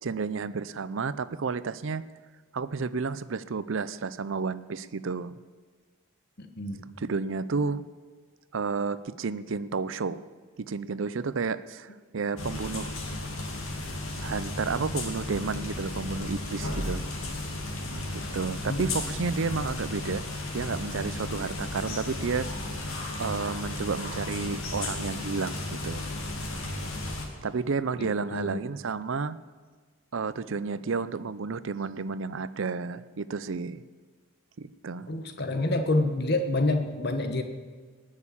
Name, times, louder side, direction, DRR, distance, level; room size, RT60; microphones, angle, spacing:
voice 1, 0.0-2.0 2.5-5.4 7.0-7.8 8.5-10.2 10.6-13.0 14.2-17.0 17.9-20.2 20.5-22.5 23.2-26.0 27.4-29.4 30.1-33.8 34.6-35.1, right 4 dB, 60° right, 16 dB, 0.5 m, -31 dB
voice 2, 6.4-6.8 18.7-18.8 28.0-28.6 35.1-37.4, left 2 dB, 50° left, 7 dB, 1.2 m, -28 dB
sound 1, 12.4-27.3, left 2 dB, 75° left, 2.5 m, -34 dB
19.0 x 6.6 x 8.6 m, 1.5 s
head